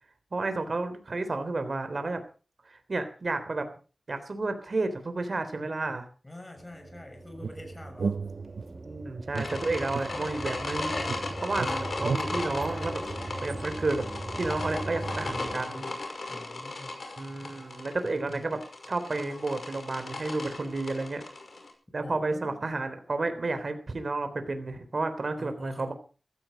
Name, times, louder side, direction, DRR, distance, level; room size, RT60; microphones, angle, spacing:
voice 1, 0.3-2.2 2.7-3.7 4.1-6.1 8.8-11.0 11.4-13.0 13.4-14.1 14.4-15.9 17.2-21.2 21.9-25.9, right 3 dB, 60° right, 9 dB, 3.4 m, -31 dB
voice 2, 6.2-8.2 16.3-16.9 22.0-22.6 25.4-25.9, left 1 dB, 20° left, 5 dB, 6.4 m, -45 dB
sound 1, 6.6-15.6, right 2 dB, 40° right, 1.5 m, -40 dB
sound 2, 7.4-8.9 9.3-10.8 11.1-13.6, right 5 dB, 85° right, 0.7 m, -35 dB
sound 3, 9.4-21.7, left 3 dB, 70° left, 5.9 m, -36 dB
15.5 x 14.5 x 5.2 m, 0.37 s
wide cardioid pair, 65°, 0 cm